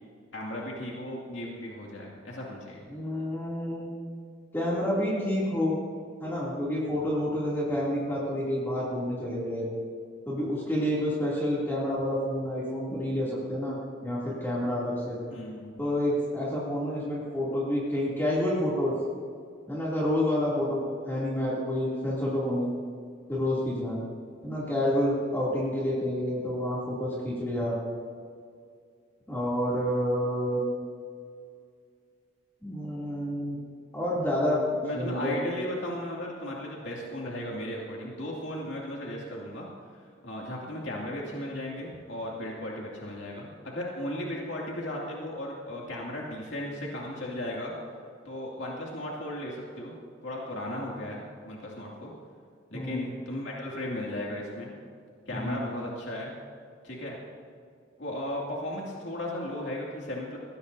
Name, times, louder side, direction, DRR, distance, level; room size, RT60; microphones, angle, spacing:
voice 1, 0.3-2.8 15.3-15.7 34.8-39.7 40.2-47.7 48.2-50.0 50.2-52.1 52.7-54.7 55.3-56.3 56.8-57.2 58.0-60.4, left 1 dB, 70° left, -3 dB, 2.4 m, -36 dB
voice 2, 2.9-3.9 4.5-5.8 6.2-9.7 10.3-13.8 14.0-15.2 15.8-18.9 19.7-22.7 23.3-24.0 24.4-27.8 29.3-30.7 32.6-33.6 33.9-35.3 52.7-53.1 55.3-55.6, left 1 dB, 10° left, -7 dB, 2.7 m, -29 dB
21.0 x 17.0 x 2.7 m, 2.2 s
head